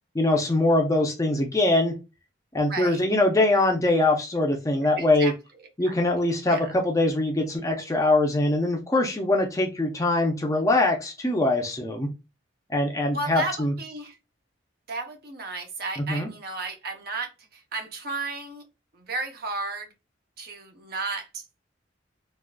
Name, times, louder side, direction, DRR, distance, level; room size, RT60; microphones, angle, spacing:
voice 1, 0.1-2.0 2.5-5.3 5.8-12.1 12.7-13.7 16.1-16.3, left 2 dB, 15° left, 0.5 m, -23 dB
voice 2, 2.7-3.0 5.0-5.3 5.8-5.9 6.5-6.7 13.1-14.2 14.9-18.6 18.9-19.9 20.4-21.4, right 3 dB, 50° right, 0.7 m, -33 dB
3.6 x 2.4 x 2.2 m
head